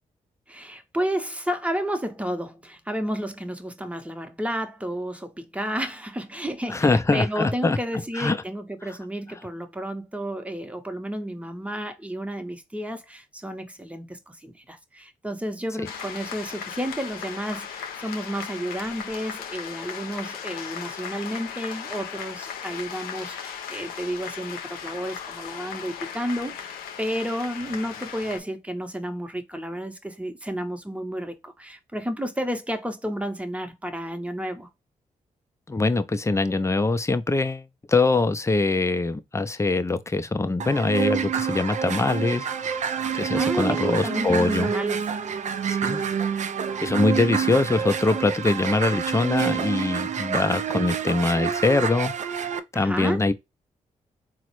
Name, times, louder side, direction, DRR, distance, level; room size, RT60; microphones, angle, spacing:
voice 1, 0.5-34.7 43.3-45.1 52.7-53.2, equal, 10° right, 0.8 m, -31 dB
voice 2, 6.7-7.8 8.1-8.4 35.7-42.8 43.1-44.7 45.7-46.3 46.8-53.3, left 3 dB, 20° left, 0.5 m, -23 dB
sound 1, 15.8-28.4, left 7 dB, 85° left, 0.5 m, -37 dB
sound 2, 40.6-52.6, right 7 dB, 50° right, 0.5 m, -28 dB
3.8 x 2.1 x 3.0 m
supercardioid pair, 45°, 15 cm